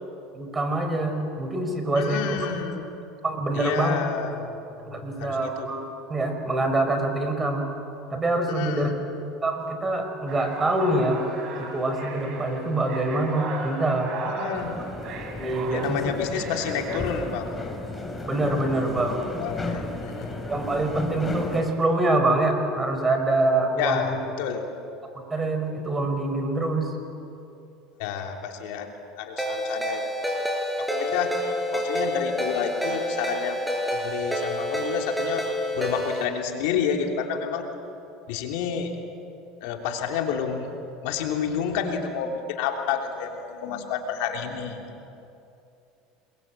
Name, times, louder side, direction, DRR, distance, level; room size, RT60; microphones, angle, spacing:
voice 1, 0.3-2.4 3.2-4.0 4.9-5.8 6.1-7.7 8.1-8.9 9.4-11.2 11.6-14.1 15.4-16.0 18.3-19.2 20.5-24.2 25.1-26.9, right 2 dB, 20° right, 5 dB, 5.2 m, -25 dB
voice 2, 1.9-2.9 3.5-4.6 4.9-5.7 8.5-8.9 14.2-14.8 15.7-17.5 19.4-20.4 23.8-24.7 28.0-30.3 30.8-31.3 31.7-33.6 33.9-35.4 35.7-37.6 38.3-38.9 39.6-40.7 41.0-44.9, left 7 dB, 75° left, 3 dB, 3.2 m, -30 dB
sound 1, 10.3-17.0, right 3 dB, 50° right, 5.2 m, -36 dB
sound 2, 14.5-21.6, left 2 dB, 15° left, 4.3 m, -34 dB
Ringtone, 29.4-36.3, equal, ahead, 5.4 m, -28 dB
28.0 x 22.0 x 9.0 m, 2.7 s
supercardioid pair, 105°, 0 cm